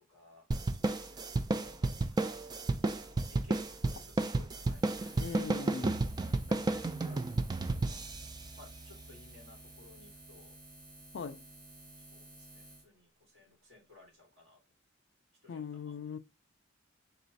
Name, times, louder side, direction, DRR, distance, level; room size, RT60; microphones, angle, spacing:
voice 1, 0.1-5.2 6.5-8.1 8.5-10.6 12.0-14.6 15.4-16.0, left 2 dB, 60° right, 2.4 m, -60 dB
sound 1, 0.5-9.3, right 2 dB, 20° right, 0.3 m, -33 dB
Buzz, 4.5-12.8, right 1 dB, 45° right, 1.7 m, -54 dB
voice 2, 5.2-6.0 11.1-11.4 15.5-16.2, left 5 dB, 60° left, 0.4 m, -40 dB
4.0 x 2.4 x 4.0 m
head